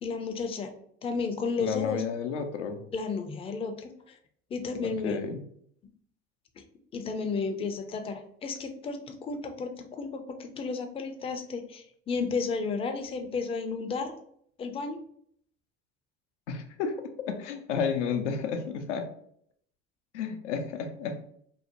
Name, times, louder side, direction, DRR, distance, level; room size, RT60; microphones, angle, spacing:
voice 1, 0.0-0.7 1.0-2.0 2.9-4.2 4.5-5.2 6.6-6.7 6.9-14.2 14.6-15.0, left 4 dB, 15° left, 6 dB, 0.3 m, -33 dB
voice 2, 1.6-2.8 4.8-5.4 16.5-16.9 17.3-19.0 20.1-21.2, left 6 dB, 85° left, 7 dB, 0.5 m, -31 dB
2.7 x 2.0 x 2.8 m, 0.66 s
hypercardioid pair, 70°, 35 cm